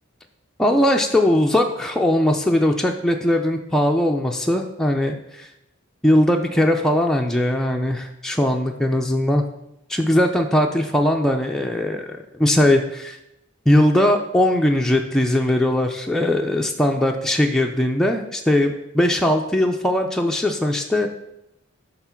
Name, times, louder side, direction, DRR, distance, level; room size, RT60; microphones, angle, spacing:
voice 1, 0.6-5.5 6.0-9.4 9.9-13.2 13.7-21.1, left 1 dB, ahead, 1 dB, 0.4 m, -20 dB
6.9 x 3.7 x 5.7 m, 0.87 s
head